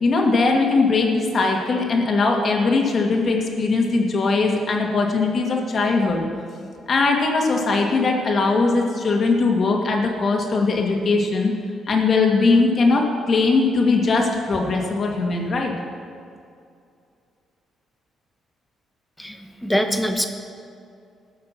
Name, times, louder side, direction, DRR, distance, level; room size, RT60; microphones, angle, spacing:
voice 1, 0.0-6.3 6.9-11.5 11.9-15.7, left 3 dB, 50° left, 1 dB, 2.3 m, -20 dB
voice 2, 19.2-20.3, equal, 5° left, 5 dB, 1.3 m, -23 dB
19.0 x 6.6 x 6.1 m, 2.4 s
cardioid pair, 90°, 0 cm